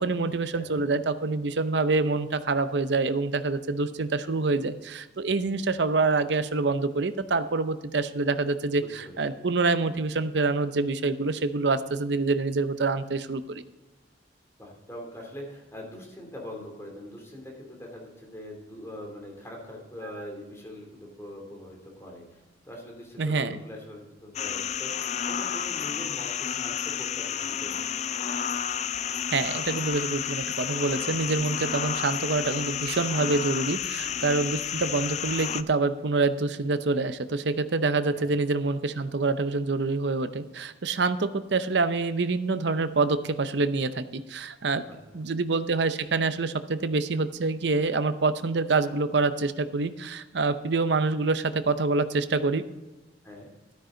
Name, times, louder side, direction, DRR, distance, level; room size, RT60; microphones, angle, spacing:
voice 1, 0.0-13.6 23.2-23.6 29.3-44.8 45.1-52.6, right 3 dB, 65° right, 11 dB, 0.7 m, -26 dB
voice 2, 14.6-28.1 38.1-38.2 45.1-45.2 53.2-53.5, left 1 dB, 15° left, 0 dB, 2.9 m, -42 dB
sound 1, 24.3-35.6, left 8 dB, 35° left, 0.3 m, -31 dB
13.0 x 9.4 x 3.9 m, 1.1 s
head